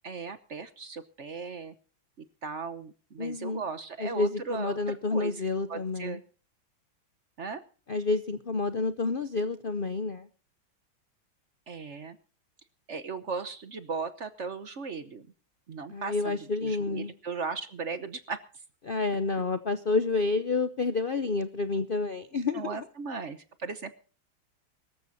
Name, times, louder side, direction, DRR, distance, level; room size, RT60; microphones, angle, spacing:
voice 1, 0.0-1.7 2.4-5.4 5.7-6.2 7.4-7.6 11.7-12.2 12.9-15.3 15.7-18.4 22.5-23.9, right 5 dB, 45° right, 11 dB, 1.0 m, -37 dB
voice 2, 3.2-3.6 4.0-6.2 7.9-10.3 15.9-17.1 18.8-22.8, left 3 dB, 75° left, 12 dB, 0.5 m, -29 dB
24.0 x 14.0 x 2.7 m, 0.38 s
omnidirectional pair, 2.2 m